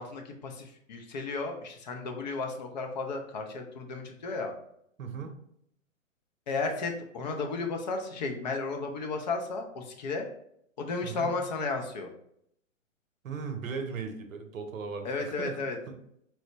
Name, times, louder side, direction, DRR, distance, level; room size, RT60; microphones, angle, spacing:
voice 1, 0.0-4.5 6.5-10.3 10.8-12.1 15.0-15.8, left 3 dB, 35° left, 3 dB, 0.5 m, -34 dB
voice 2, 5.0-5.3 11.0-11.4 13.2-15.1 15.4-15.6 15.9-16.0, right 5 dB, 80° right, 6 dB, 0.7 m, -37 dB
4.3 x 2.0 x 2.8 m, 0.72 s
hypercardioid pair, 125°, 39 cm